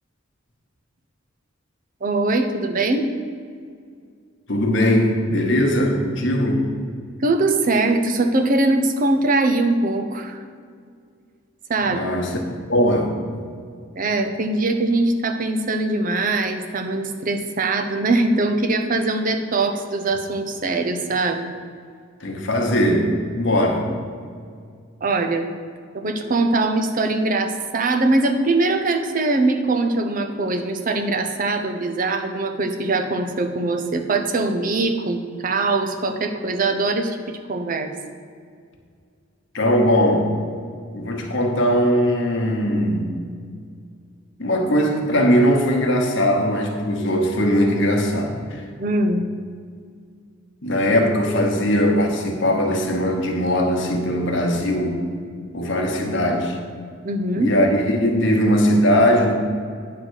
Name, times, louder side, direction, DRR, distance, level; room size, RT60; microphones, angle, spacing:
voice 1, 2.0-3.1 7.2-10.4 11.7-12.0 13.9-21.5 25.0-25.5 25.9-37.9 48.8-49.2 57.0-57.5, right 2 dB, 45° right, 6 dB, 0.7 m, -22 dB
voice 2, 4.5-6.7 11.8-12.3 12.7-13.1 22.2-23.9 39.5-40.3 40.9-43.2 44.4-48.6 50.6-55.0 55.5-56.6 57.4-59.3, equal, 65° left, 1 dB, 1.1 m, -20 dB
9.3 x 3.9 x 6.3 m, 2.1 s
head